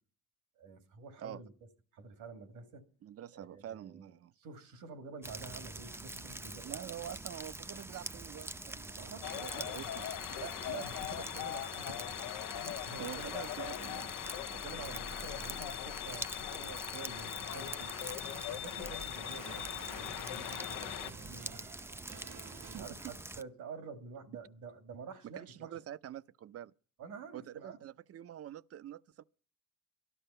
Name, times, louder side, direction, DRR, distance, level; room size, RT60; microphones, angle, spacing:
voice 1, 0.6-1.5 1.9-2.9 3.3-4.1 4.4-6.8 9.0-10.0 10.4-12.1 12.5-13.5 14.2-17.9 18.5-21.7 22.7-25.7 27.0-27.8, right 5 dB, 90° right, 2.1 m, -48 dB
voice 2, 3.0-4.3 6.6-9.0 9.3-10.4 13.0-14.1 22.7-22.9 25.2-26.7 27.3-29.2, right 11 dB, 50° right, 0.6 m, -46 dB
sound 1, 5.2-23.4, right 2 dB, 10° right, 0.5 m, -45 dB
sound 2, 9.2-21.1, left 14 dB, 85° left, 0.6 m, -41 dB
sound 3, 17.1-22.8, right 7 dB, 70° right, 1.1 m, -53 dB
12.5 x 12.5 x 5.5 m
cardioid pair, 90°, 30 cm